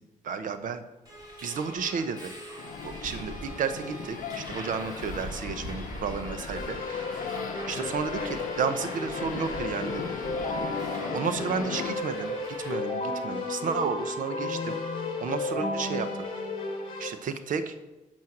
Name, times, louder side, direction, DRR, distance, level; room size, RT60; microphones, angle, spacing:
voice 1, 0.2-0.8 1.4-2.3 2.8-7.0 7.7-10.2 11.1-12.3 12.7-14.8 15.2-16.1 17.0-17.7, right 6 dB, 75° right, 10 dB, 0.9 m, -32 dB
Subway metro underground, 1.0-12.7, right 1 dB, 25° right, 3.4 m, -41 dB
sound 1, 2.6-12.0, left 8 dB, 85° left, 0.7 m, -39 dB
Keyboard (musical), 6.5-17.1, left 3 dB, 40° left, 2.5 m, -33 dB
12.0 x 4.5 x 7.8 m, 1.1 s
wide cardioid pair, 175°, 14 cm